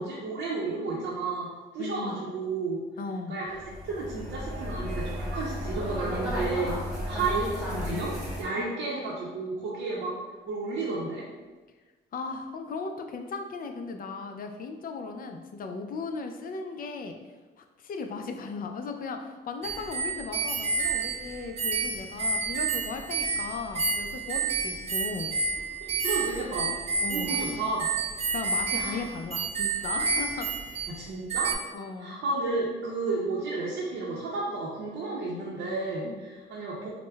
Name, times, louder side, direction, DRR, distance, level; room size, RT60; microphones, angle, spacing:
voice 1, 0.0-1.5 1.7-2.8 3.3-3.6 3.8-6.8 7.1-8.1 8.4-10.1 10.5-11.2 25.8-26.7 27.1-27.9 28.7-29.0 30.9-31.5 32.0-36.9, right 3 dB, 75° right, -5 dB, 0.7 m, -32 dB
voice 2, 1.8-2.2 3.0-3.4 8.6-8.8 12.1-17.1 17.6-25.3 27.0-27.4 28.3-30.5 31.7-32.2 36.0-36.3, left 4 dB, 45° left, 5 dB, 0.4 m, -37 dB
sound 1, 3.5-8.4, equal, ahead, 1.3 m, -33 dB
sound 2, 19.6-31.0 31.3-31.6, right 4 dB, 35° right, 0.4 m, -30 dB
4.8 x 2.1 x 2.2 m, 1.3 s
cardioid pair, 90°, 20 cm